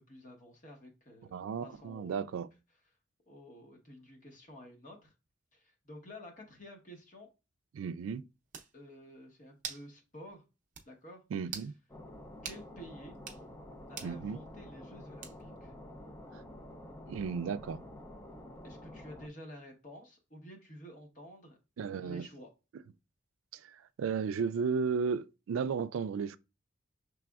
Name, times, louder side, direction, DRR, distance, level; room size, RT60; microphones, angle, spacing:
voice 1, 0.0-2.3 3.3-5.1 5.5-7.3 8.7-10.4 10.9-11.2 11.5-11.6 12.4-13.2 13.9-15.7 18.6-21.6 22.0-22.5, equal, 40° left, 1.0 m, -51 dB
voice 2, 1.3-2.5 7.7-8.2 11.3-11.7 14.0-14.4 16.3-16.4 17.1-17.8 21.8-22.2 23.5-23.7 24.0-26.4, right 6 dB, 85° right, 0.3 m, -34 dB
sound 1, 8.1-8.2 8.5-8.7 9.6-9.9 10.3-10.4 10.7-10.9 11.4-11.7 12.4-12.6 13.1-13.4 14.0-14.2 15.2-15.6, right 7 dB, 40° right, 0.6 m, -43 dB
sound 2, 11.9-19.3, left 1 dB, 15° left, 0.4 m, -49 dB
6.0 x 3.3 x 2.3 m
head